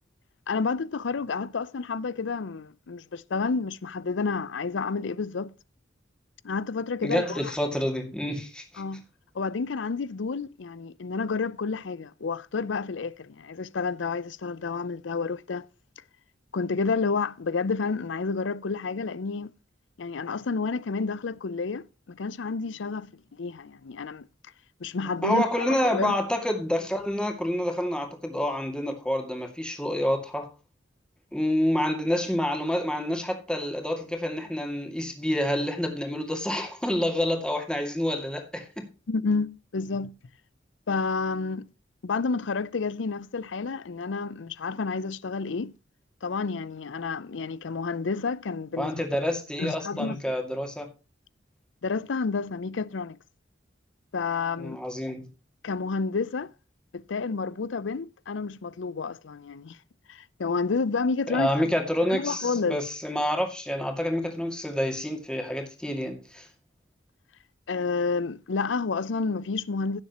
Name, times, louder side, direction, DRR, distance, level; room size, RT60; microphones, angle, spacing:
voice 1, 0.5-5.5 6.4-7.5 8.8-9.0 9.3-15.7 16.5-19.5 20.0-24.3 24.8-26.2 39.1-40.2 40.9-41.7 42.0-45.7 46.2-49.1 49.6-50.4 51.8-53.2 54.1-54.8 55.6-56.5 56.9-59.8 60.1-61.5 62.1-62.8 67.7-70.0, left 4 dB, 75° left, 0.6 m, -30 dB
voice 2, 7.0-8.8 25.2-30.5 31.3-38.9 48.8-50.9 54.6-55.3 61.3-66.5, left 1 dB, 5° left, 2.2 m, -28 dB
16.0 x 7.2 x 2.9 m
head